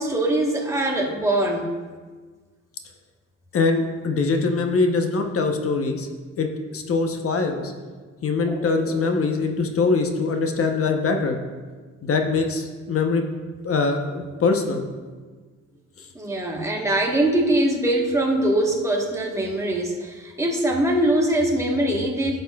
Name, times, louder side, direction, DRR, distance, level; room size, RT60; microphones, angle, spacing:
voice 1, 0.0-1.7 8.4-9.0 16.1-22.4, right 1 dB, 10° right, -1 dB, 1.3 m, -22 dB
voice 2, 3.5-6.1 6.4-7.7 8.2-11.4 12.0-13.2 13.6-14.8 16.0-16.1, left 4 dB, 50° left, 5 dB, 0.9 m, -23 dB
11.0 x 6.6 x 2.3 m, 1.4 s
cardioid pair, 90°, 30 cm